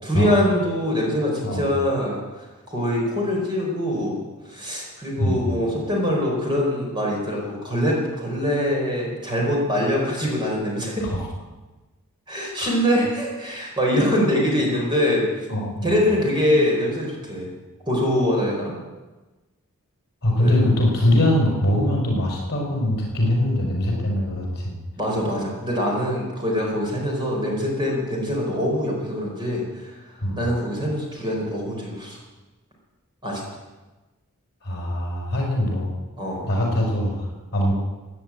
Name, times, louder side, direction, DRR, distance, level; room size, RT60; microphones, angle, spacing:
voice 1, 0.0-2.2 2.7-4.2 4.5-11.1 12.3-15.5 15.8-17.5 17.9-18.8 20.4-20.5 25.0-29.9 30.4-32.2 33.2-33.4 36.2-36.5, equal, 20° right, -2 dB, 4.6 m, -23 dB
voice 2, 15.5-16.0 20.2-24.8 30.2-30.4 34.6-35.9 36.4-37.7, left 1 dB, 50° left, -1 dB, 5.5 m, -22 dB
16.0 x 10.0 x 8.8 m, 1.2 s
head